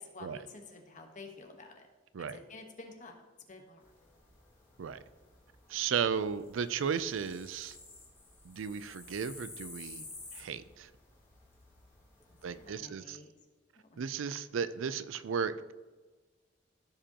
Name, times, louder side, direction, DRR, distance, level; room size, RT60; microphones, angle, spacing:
voice 1, 0.0-1.9 2.2-3.2 3.5-3.8 12.5-13.3 13.8-14.2, left 3 dB, 40° left, 3 dB, 1.2 m, -50 dB
sound 1, 3.8-12.7, left 3 dB, 15° left, 2.1 m, -53 dB
voice 2, 5.7-7.8 8.4-10.1 10.3-10.9 12.4-13.2 14.0-15.7, right 6 dB, 85° right, 14 dB, 0.4 m, -35 dB
14.5 x 5.1 x 2.9 m, 1.3 s
head